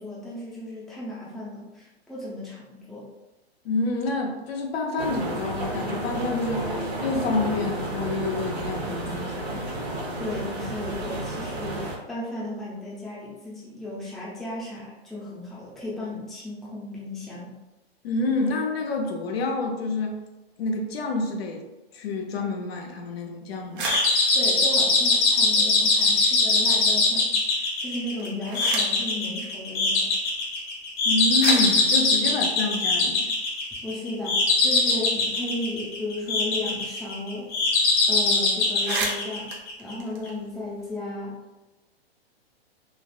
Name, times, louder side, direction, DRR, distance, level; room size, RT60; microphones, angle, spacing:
voice 1, 0.0-3.1 10.2-17.5 24.3-30.1 33.8-37.5 38.1-39.5 39.8-41.4, left 1 dB, ahead, -7 dB, 0.6 m, -35 dB
voice 2, 3.6-9.7 18.0-20.2 20.6-21.6 21.9-23.9 31.0-33.3, left 3 dB, 70° left, 2 dB, 0.7 m, -28 dB
sound 1, 5.0-12.0, right 1 dB, 90° right, 1.0 m, -31 dB
sound 2, 23.6-26.2 26.5-27.2 28.0-29.1 30.1-30.2 31.0-31.1 31.4-33.7 34.1-34.2 34.4-37.0 37.3-37.4 37.7-38.0 38.3-38.4 38.7-40.9, right 3 dB, 55° right, 0.8 m, -36 dB
sound 3, 23.8-39.9, left 3 dB, 30° left, 0.8 m, -22 dB
3.4 x 2.4 x 2.3 m, 1.1 s
hypercardioid pair, 120°, 32 cm